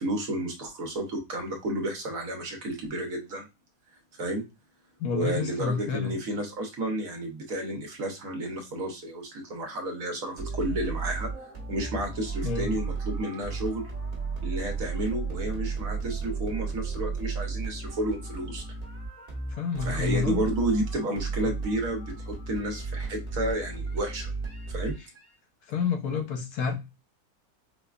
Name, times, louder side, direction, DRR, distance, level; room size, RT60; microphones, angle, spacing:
voice 1, 0.0-3.5 4.2-4.4 5.1-11.3 11.7-13.8 14.4-18.6 19.8-24.3 24.7-24.9, right 1 dB, 65° right, 1.2 m, -31 dB
voice 2, 5.0-6.1 12.4-12.7 19.5-20.4 21.4-21.5 25.7-26.7, left 6 dB, 85° left, 1.3 m, -29 dB
sound 1, 10.4-25.3, right 4 dB, 30° right, 1.1 m, -34 dB
4.7 x 2.2 x 2.3 m
omnidirectional pair, 1.6 m